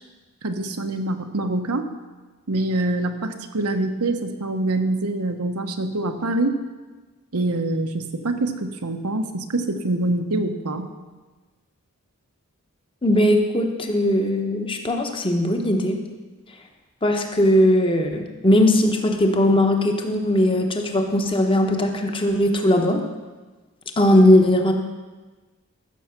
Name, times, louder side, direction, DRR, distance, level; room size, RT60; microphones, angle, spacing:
voice 1, 0.4-1.9 2.5-6.6 7.3-10.9, right 2 dB, 85° right, 6 dB, 1.1 m, -25 dB
voice 2, 13.0-16.0 17.0-23.0 24.0-24.7, left 1 dB, 25° left, 4 dB, 1.1 m, -19 dB
14.5 x 6.6 x 6.0 m, 1.3 s
head